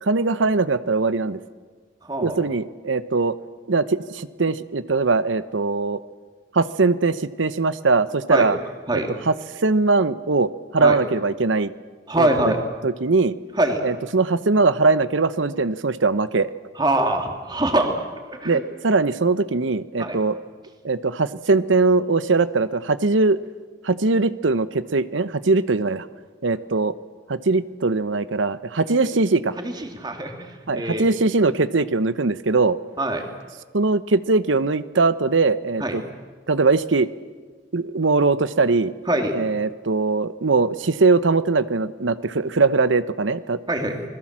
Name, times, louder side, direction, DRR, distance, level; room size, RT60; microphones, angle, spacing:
voice 1, 0.0-1.4 2.2-3.3 3.7-6.0 6.5-8.6 8.9-9.3 9.6-11.7 12.2-12.5 12.8-13.4 13.8-16.5 18.4-20.4 20.8-23.4 23.8-26.1 26.4-26.9 27.3-29.5 30.7-32.8 33.7-36.0 36.5-37.1 37.7-38.9 39.3-43.6, right 3 dB, 85° right, 14 dB, 0.9 m, -21 dB
voice 2, 2.0-2.4 8.3-8.4 8.9-9.1 10.8-11.0 12.1-12.6 13.6-13.8 16.8-17.9 18.3-18.6 20.0-20.2 29.6-30.4 30.7-31.1 33.0-33.2 35.8-36.0 39.1-39.3 43.7-44.1, right 1 dB, 20° right, 4 dB, 2.8 m, -23 dB
26.5 x 20.5 x 7.5 m, 1.4 s
head